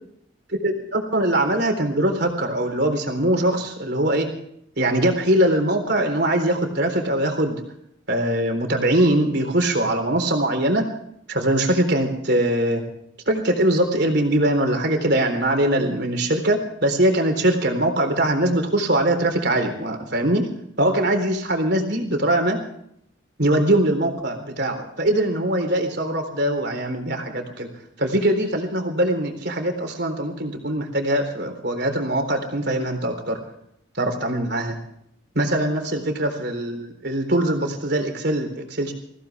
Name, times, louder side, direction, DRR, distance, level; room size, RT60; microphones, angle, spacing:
voice 1, 0.5-4.3 4.8-7.6 8.1-10.9 11.3-12.8 13.3-20.5 20.8-22.6 23.4-27.7 28.0-33.4 33.9-34.8 35.3-38.9, right 1 dB, 55° right, 6 dB, 3.9 m, -22 dB
23.0 x 16.5 x 3.5 m, 0.73 s
head